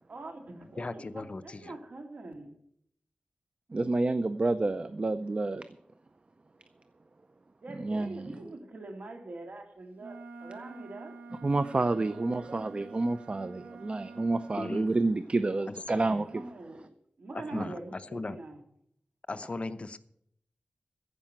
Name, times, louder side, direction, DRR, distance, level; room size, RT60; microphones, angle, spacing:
voice 1, 0.1-2.6 7.6-11.2 12.0-12.8 16.1-18.6, right 2 dB, 65° right, 2.2 m, -44 dB
voice 2, 0.8-1.8 14.6-14.9 15.7-16.3 17.3-18.4 19.3-20.0, left 3 dB, 45° left, 0.7 m, -38 dB
voice 3, 3.7-5.6 7.8-8.3 11.4-16.4 17.5-17.6, right 2 dB, 40° right, 0.5 m, -29 dB
Wind instrument woodwind instrument, 10.0-14.9, right 3 dB, 85° right, 1.5 m, -47 dB
15.0 x 5.6 x 8.8 m
wide cardioid pair, 80°, 3 cm